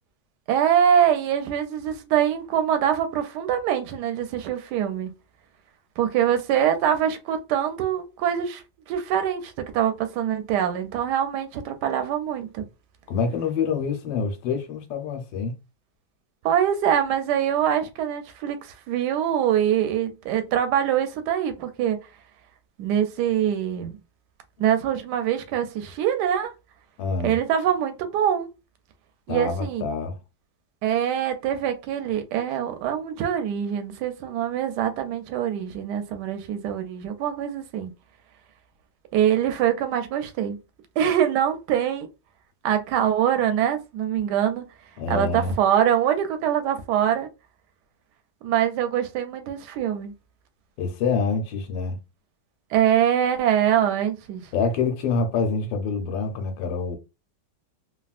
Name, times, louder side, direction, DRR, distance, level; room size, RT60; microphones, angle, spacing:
voice 1, 0.5-5.1 6.0-8.6 8.9-12.7 16.4-22.0 22.8-23.9 24.6-26.5 27.2-28.5 29.3-29.8 30.8-37.9 39.1-40.6 41.0-42.1 42.6-44.6 45.1-47.3 48.4-50.1 52.7-54.4, right 9 dB, 75° right, 1.1 m, -24 dB
voice 2, 13.1-15.5 27.0-27.4 29.3-30.2 45.0-45.6 50.8-52.0 54.5-57.0, left 5 dB, 75° left, 1.4 m, -26 dB
3.3 x 2.3 x 2.4 m
omnidirectional pair, 2.1 m